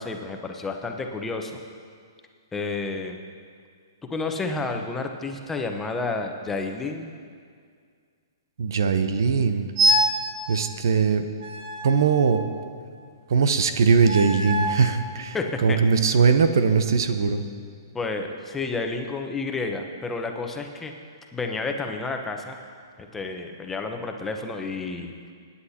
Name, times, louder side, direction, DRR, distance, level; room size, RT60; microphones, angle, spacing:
voice 1, 0.0-1.6 2.5-3.2 4.1-7.1 15.3-15.8 17.9-20.9 21.3-22.6 23.0-25.1, left 3 dB, 10° left, 3 dB, 1.0 m, -30 dB
voice 2, 8.6-9.7 10.5-11.3 11.8-12.4 13.3-15.4 15.6-17.4, right 5 dB, 70° right, 9 dB, 0.8 m, -20 dB
sound 1, 9.8-10.3 11.4-12.7 14.0-14.9, equal, 45° right, 1.4 m, -25 dB
25.5 x 9.8 x 2.9 m, 2.1 s
hypercardioid pair, 130°, 2 cm